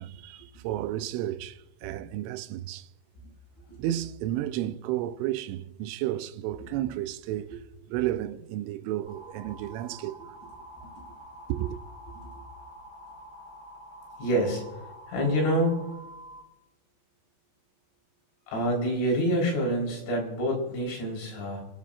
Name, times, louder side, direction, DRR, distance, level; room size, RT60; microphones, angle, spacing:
voice 1, 0.0-2.9 3.8-7.6 7.9-10.2 11.5-11.8, right 13 dB, 85° right, 3.1 m, -32 dB
sound 1, 9.1-16.4, right 1 dB, 5° right, 2.8 m, -47 dB
voice 2, 14.2-14.6 15.1-15.8 18.5-21.6, equal, 80° left, 6.5 m, -27 dB
28.5 x 11.5 x 2.5 m
omnidirectional pair, 5.5 m